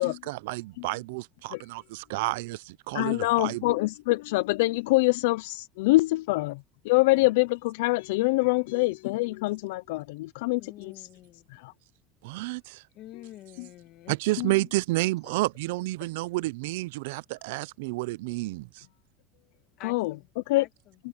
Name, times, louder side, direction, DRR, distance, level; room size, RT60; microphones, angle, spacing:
voice 1, 0.2-3.7 12.2-12.8 14.1-18.8, right 20 dB, 90° right, 0.4 m, -30 dB
voice 2, 2.9-11.1 11.5-11.7 13.6-13.7 14.4-14.5 19.8-20.1 20.5-20.6, left 21 dB, 90° left, 0.4 m, -25 dB
voice 3, 10.5-11.6 12.9-14.2 15.2-15.3 16.0-16.1 19.8-20.7, left 14 dB, 50° left, 1.5 m, -47 dB
open air
cardioid pair, 160°, 0 cm